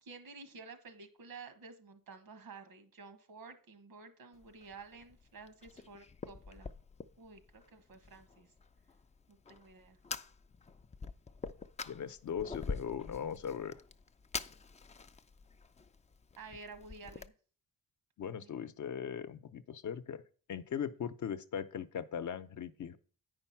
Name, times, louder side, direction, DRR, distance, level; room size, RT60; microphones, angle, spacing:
voice 1, 0.0-6.7 7.2-8.5 9.3-10.0 16.4-17.3 18.4-18.5, right 4 dB, 80° right, 8 dB, 1.5 m, -52 dB
Fire, 4.3-17.3, left 4 dB, 20° left, 0.4 m, -46 dB
voice 2, 11.8-13.8 18.2-20.2 20.5-23.0, left 8 dB, 55° left, 10 dB, 0.7 m, -39 dB
9.1 x 5.2 x 5.8 m, 0.42 s
cardioid pair, 115°, 35 cm